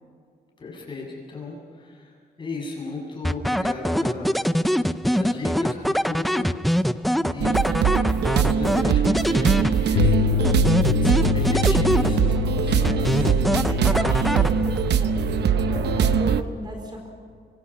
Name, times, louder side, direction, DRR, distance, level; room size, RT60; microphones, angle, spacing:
voice 1, 0.6-4.5 4.7-6.6 7.2-13.5, left 3 dB, 30° left, -2 dB, 7.4 m, -35 dB
sound 1, 3.2-10.1 10.4-12.5 12.8-14.9, equal, ahead, 0.5 m, -23 dB
sound 2, 7.4-16.4, right 7 dB, 80° right, 1.0 m, -22 dB
Bass guitar, 10.0-16.2, left 10 dB, 65° left, 0.8 m, -27 dB
voice 2, 13.6-17.1, equal, 25° right, 1 dB, 4.6 m, -37 dB
25.5 x 25.0 x 5.8 m, 2.1 s
wide cardioid pair, 165°, 17 cm